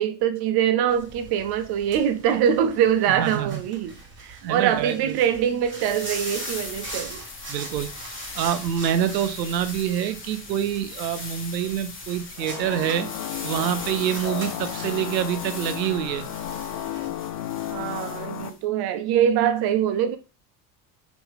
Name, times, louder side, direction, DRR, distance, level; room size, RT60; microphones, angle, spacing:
voice 1, 0.0-7.2 17.7-20.2, right 9 dB, 50° right, 0.8 m, -23 dB
sound 1, 0.9-17.1, right 2 dB, 25° right, 1.7 m, -42 dB
voice 2, 3.2-3.6 4.4-5.1 7.5-13.1 13.4-16.3, right 10 dB, 90° right, 0.7 m, -26 dB
sound 2, 5.7-18.6, left 4 dB, 25° left, 0.9 m, -40 dB
sound 3, 12.4-18.5, left 11 dB, 45° left, 0.5 m, -33 dB
3.5 x 3.0 x 3.4 m
hypercardioid pair, 85°, 50 cm